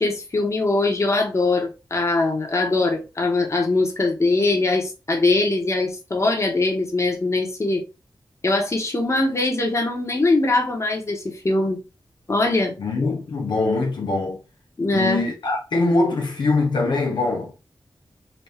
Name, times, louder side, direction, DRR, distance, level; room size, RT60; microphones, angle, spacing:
voice 1, 0.0-7.8 8.4-11.8 12.3-12.7 14.8-15.2, left 2 dB, 40° left, 1.4 m, -22 dB
voice 2, 12.8-14.4 14.9-17.5, left 3 dB, 85° left, 0.9 m, -22 dB
4.1 x 2.7 x 3.5 m
wide cardioid pair, 70°, 8 cm